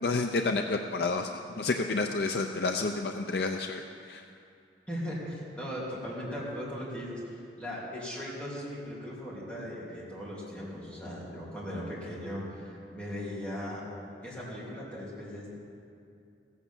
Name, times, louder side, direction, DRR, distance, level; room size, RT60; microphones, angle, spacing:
voice 1, 0.0-4.2, left 3 dB, 60° left, 5 dB, 0.5 m, -30 dB
voice 2, 4.9-13.8 14.2-15.5, equal, 5° left, -8 dB, 3.2 m, -38 dB
15.0 x 8.3 x 7.2 m, 2.5 s
head